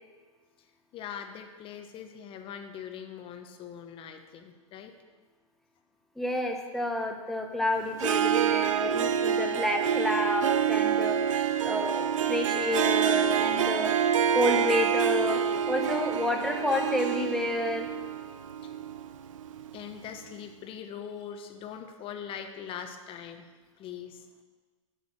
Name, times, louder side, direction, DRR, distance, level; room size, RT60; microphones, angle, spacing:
voice 1, 0.9-4.9 19.7-23.4 23.8-24.2, left 8 dB, 30° left, 6 dB, 1.0 m, -41 dB
voice 2, 6.2-11.2 11.6-13.9 14.3-15.4 15.7-17.9, left 1 dB, ahead, 3 dB, 1.0 m, -29 dB
Harp, 7.9-19.8, right 8 dB, 70° right, 0.6 m, -27 dB
7.7 x 6.9 x 6.1 m, 1.4 s
hypercardioid pair, 115°, 17 cm